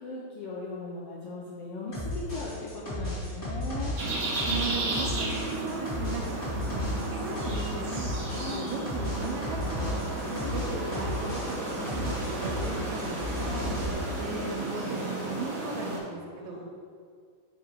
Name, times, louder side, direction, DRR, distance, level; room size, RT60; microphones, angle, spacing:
voice 1, 0.0-4.0 8.4-8.8 10.4-10.8 13.3-13.8 16.3-16.6, left 3 dB, 75° left, -4 dB, 1.4 m, -39 dB
sound 1, 1.9-12.7 13.0-13.9, left 1 dB, 30° left, 1.0 m, -34 dB
sound 2, 4.0-16.0, right 2 dB, 65° right, 0.8 m, -33 dB
voice 2, 4.4-6.4 6.7-10.0 10.4-13.6 14.2-16.7, right 3 dB, 80° right, 0 dB, 2.1 m, -37 dB
5.1 x 4.8 x 4.5 m, 2.2 s
omnidirectional pair, 3.3 m